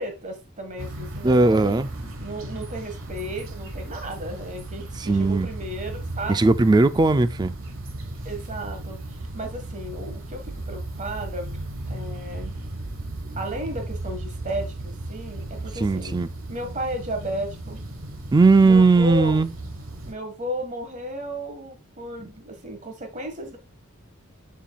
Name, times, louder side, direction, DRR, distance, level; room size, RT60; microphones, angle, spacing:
voice 1, 0.0-1.8 2.2-6.5 8.2-9.0 9.3-11.6 11.9-12.5 13.3-16.2 16.5-17.8 18.6-19.4 20.0-23.6, right 1 dB, 35° right, 1.6 m, -34 dB
sound 1, 0.8-20.1, right 2 dB, 70° right, 1.3 m, -35 dB
voice 2, 1.2-1.9 5.0-5.5 6.3-7.5 15.8-16.3 18.3-19.5, right 3 dB, 20° right, 0.3 m, -18 dB
7.5 x 7.0 x 2.3 m
head